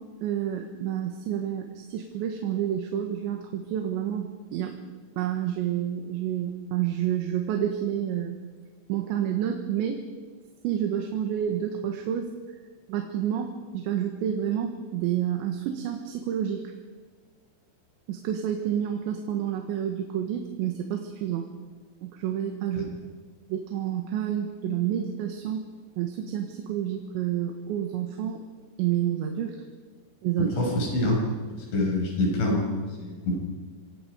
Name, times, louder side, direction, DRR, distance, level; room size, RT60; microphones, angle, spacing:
voice 1, 0.2-4.8 5.2-8.4 8.9-10.0 10.6-12.3 12.9-16.6 18.1-21.5 22.0-22.9 23.5-25.6 26.0-28.4 28.8-29.6 30.2-30.5, right 10 dB, 80° right, 4 dB, 3.7 m, -29 dB
voice 2, 30.4-31.2 31.6-33.3, left 1 dB, 80° left, -1 dB, 8.5 m, -26 dB
26.5 x 26.0 x 5.1 m, 1.5 s
omnidirectional pair, 5.3 m